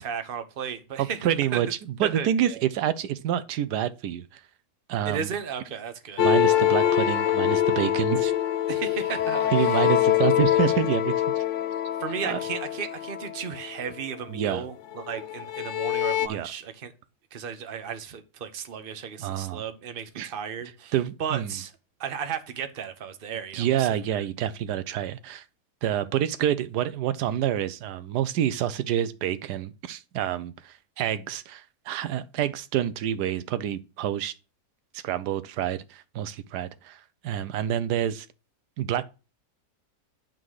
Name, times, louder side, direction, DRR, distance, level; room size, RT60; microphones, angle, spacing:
voice 1, 0.0-1.2 1.5-1.6 2.0-2.6 5.0-6.2 8.7-9.9 12.0-16.9 17.3-20.9 21.2-21.7 22.0-24.2, right 7 dB, 40° right, 1.0 m, -34 dB
voice 2, 1.0-4.4 4.9-5.3 6.2-8.3 9.5-11.4 12.2-12.4 14.3-14.7 16.2-16.5 19.2-19.6 20.2-20.3 20.9-21.5 23.5-25.4 25.8-34.3 34.9-38.3 38.8-39.0, right 10 dB, 85° right, 1.2 m, -28 dB
sound 1, 6.2-13.9 14.9-16.3, left 11 dB, 60° left, 0.9 m, -24 dB
10.5 x 3.8 x 6.3 m
omnidirectional pair, 1.7 m